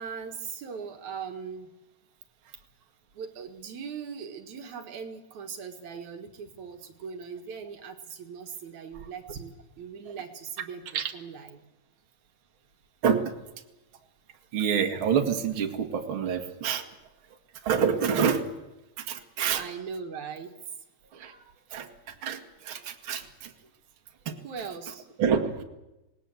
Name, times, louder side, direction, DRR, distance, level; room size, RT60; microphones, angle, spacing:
voice 1, 0.0-1.7 3.1-11.6 19.2-19.3 19.5-20.6 24.4-25.1, right 6 dB, 75° right, 6 dB, 3.0 m, -40 dB
voice 2, 13.0-13.3 14.5-16.8 17.6-18.5 19.0-19.6 21.1-21.4 21.7-23.5 24.3-24.4 25.2-25.6, right 7 dB, 45° right, 4 dB, 2.6 m, -27 dB
27.0 x 19.0 x 7.8 m, 0.97 s
omnidirectional pair, 3.4 m